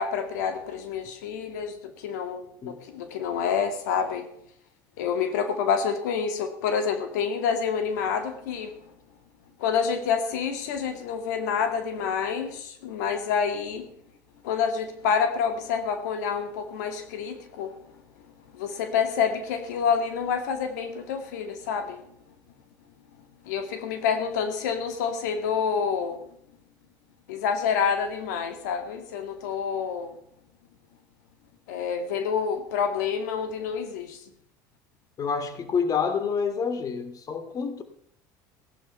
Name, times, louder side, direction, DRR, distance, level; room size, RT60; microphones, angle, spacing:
voice 1, 0.0-4.3 5.0-8.7 9.6-13.9 14.4-17.7 18.5-22.0 23.5-26.2 27.3-30.1 31.7-34.2, left 6 dB, 85° left, 7 dB, 2.1 m, -28 dB
voice 2, 35.2-37.8, left 6 dB, 40° left, 10 dB, 2.5 m, -28 dB
18.0 x 11.5 x 5.6 m, 0.70 s
supercardioid pair, 90°, 9 cm